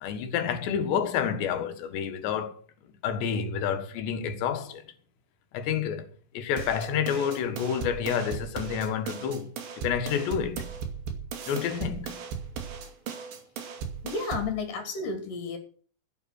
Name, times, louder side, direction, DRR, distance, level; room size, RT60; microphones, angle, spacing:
voice 1, 0.0-2.5 3.0-4.9 5.5-6.1 6.3-9.5 9.8-10.7 11.5-12.2, left 8 dB, 85° left, 3.8 m, -29 dB
sound 1, 6.6-14.6, right 6 dB, 80° right, 4.5 m, -37 dB
voice 2, 14.0-15.6, left 4 dB, 55° left, 4.0 m, -32 dB
15.5 x 9.1 x 6.1 m
omnidirectional pair, 4.9 m